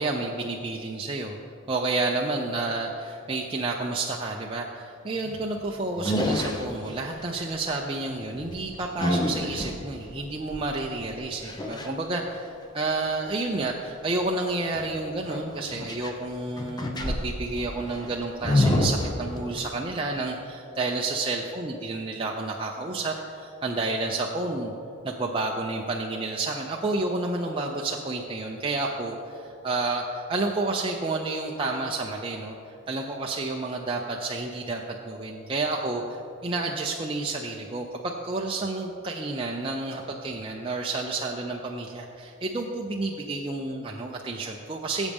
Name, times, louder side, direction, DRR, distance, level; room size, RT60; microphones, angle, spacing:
voice 1, 0.0-1.4 1.7-24.7 25.0-32.6 32.9-45.1, right 2 dB, 25° right, -1 dB, 0.6 m, -30 dB
sound 1, 5.2-5.6 6.0-7.3 8.2-11.9 14.7-16.3 16.6-19.8, left 1 dB, 20° left, 0.8 m, -28 dB
18.0 x 8.2 x 3.6 m, 2.7 s
head